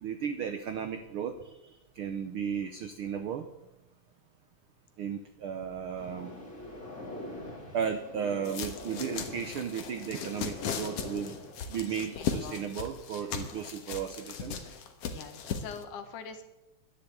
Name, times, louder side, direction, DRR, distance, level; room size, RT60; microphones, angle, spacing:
voice 1, 0.0-1.6 2.0-3.5 5.0-6.3 7.7-11.4 11.7-14.6, right 7 dB, 85° right, 8 dB, 1.2 m, -35 dB
sound 1, 6.0-12.4, left 1 dB, 25° left, 2.7 m, -44 dB
sound 2, 8.4-15.8, left 6 dB, 60° left, 2.1 m, -37 dB
voice 2, 11.9-12.7 13.6-13.7 15.1-16.4, left 6 dB, 75° left, 7 dB, 2.8 m, -44 dB
12.0 x 10.5 x 8.4 m, 0.97 s
omnidirectional pair, 3.6 m